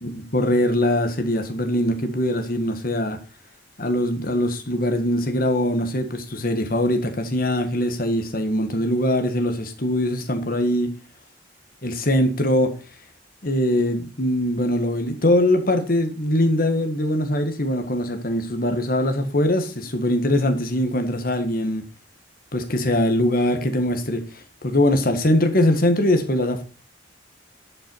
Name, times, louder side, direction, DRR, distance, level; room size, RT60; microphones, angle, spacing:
voice 1, 0.0-3.2 3.8-10.9 11.8-12.7 13.4-21.8 22.5-24.2 24.6-26.6, left 1 dB, 50° left, 1.7 m, -22 dB
11.5 x 5.8 x 4.7 m
head